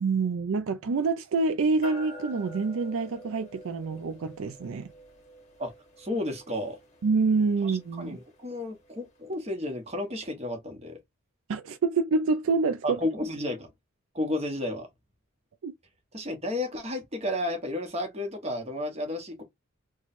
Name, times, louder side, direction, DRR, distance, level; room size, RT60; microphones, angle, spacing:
voice 1, 0.0-4.9 7.0-8.2 11.5-13.0 15.6-15.7, right 4 dB, 70° right, 0.4 m, -27 dB
sound 1, 1.8-9.5, equal, 30° left, 1.0 m, -48 dB
voice 2, 6.0-6.8 7.6-11.0 12.8-13.7 14.1-14.9 16.1-19.4, left 1 dB, 30° right, 1.0 m, -32 dB
3.1 x 2.3 x 4.1 m
head